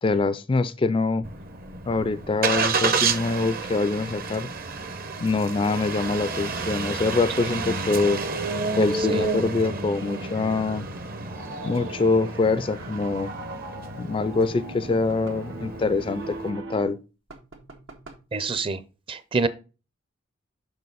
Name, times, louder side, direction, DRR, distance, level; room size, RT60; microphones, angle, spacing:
voice 1, 0.0-1.3 1.9-4.5 5.2-8.2 8.8-10.9 11.6-13.3 14.0-17.0, left 3 dB, 25° left, 0.3 m, -24 dB
Engine starting, 1.2-16.5, right 4 dB, 50° right, 0.9 m, -30 dB
Piano, 9.9-16.9, right 2 dB, 65° right, 1.2 m, -40 dB
sound 1, 14.9-15.6 17.3-18.3, right 3 dB, 90° right, 1.7 m, -47 dB
voice 2, 18.3-18.8 19.1-19.5, right 4 dB, 25° right, 0.6 m, -26 dB
6.7 x 5.7 x 3.9 m
head